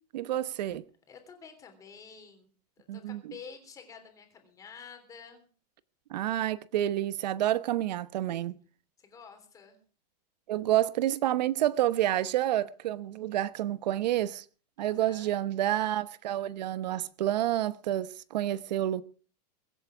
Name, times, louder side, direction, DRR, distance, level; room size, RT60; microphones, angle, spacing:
voice 1, 0.1-0.8 2.9-3.2 6.1-8.6 10.5-14.4 14.8-19.0, right 13 dB, 80° right, 1.0 m, -29 dB
voice 2, 1.1-2.5 2.9-5.5 9.0-9.8 14.8-15.3, left 6 dB, 15° left, 3.4 m, -49 dB
23.5 x 8.0 x 6.0 m
supercardioid pair, 170°, 21 cm